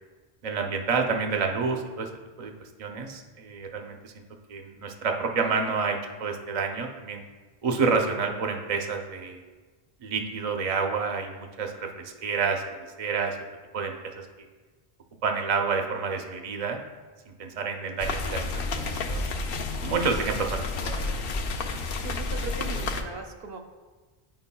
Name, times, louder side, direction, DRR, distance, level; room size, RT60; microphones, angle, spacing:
voice 1, 0.4-2.1 2.4-2.5 2.8-4.1 4.5-7.2 7.6-9.4 10.0-13.4 13.7-14.3 15.2-16.8 17.3-19.3 19.8-21.2, right 5 dB, 45° right, 3 dB, 0.6 m, -29 dB
sound 1, 18.0-23.0, left 3 dB, 70° left, 0.7 m, -30 dB
voice 2, 22.0-23.6, right 4 dB, 70° right, 4 dB, 0.8 m, -39 dB
9.2 x 5.6 x 2.2 m, 1.3 s
omnidirectional pair, 1.0 m